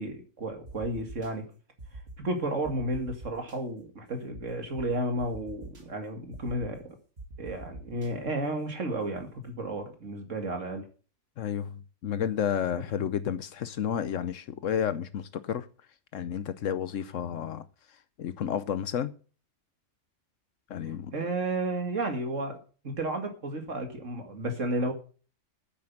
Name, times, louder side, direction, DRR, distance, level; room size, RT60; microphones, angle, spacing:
voice 1, 0.0-1.4 2.2-6.8 7.4-10.9 12.9-13.0 21.1-22.6 22.8-24.9, right 1 dB, 75° right, 2.5 m, -32 dB
sound 1, 0.7-1.3 1.8-2.2 2.6-3.6 4.3-4.4 4.8-4.9 5.2-5.8 6.3-6.7 7.2-8.1, right 2 dB, 55° right, 2.4 m, -43 dB
voice 2, 11.4-15.7 16.1-17.7 18.2-19.1 20.7-21.1, left 8 dB, 80° left, 1.1 m, -31 dB
9.7 x 7.7 x 7.3 m
omnidirectional pair, 1.3 m